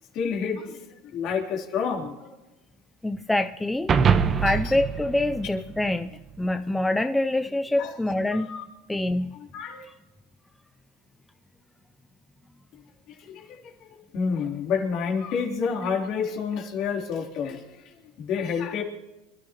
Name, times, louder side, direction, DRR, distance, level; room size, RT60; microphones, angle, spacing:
voice 1, 0.1-0.9 1.1-2.3 7.8-7.9 8.3-8.7 9.5-9.9 12.7-12.8 13.2-17.8 18.2-18.8, left 6 dB, 50° left, 0 dB, 3.5 m, -29 dB
voice 2, 3.0-3.9 4.4-8.5 8.9-9.4, left 1 dB, 5° left, 8 dB, 0.5 m, -25 dB
sound 1, 3.9-6.4, right 6 dB, 30° right, 1.1 m, -24 dB
27.5 x 13.5 x 3.0 m, 1.1 s
supercardioid pair, 125°, 0 cm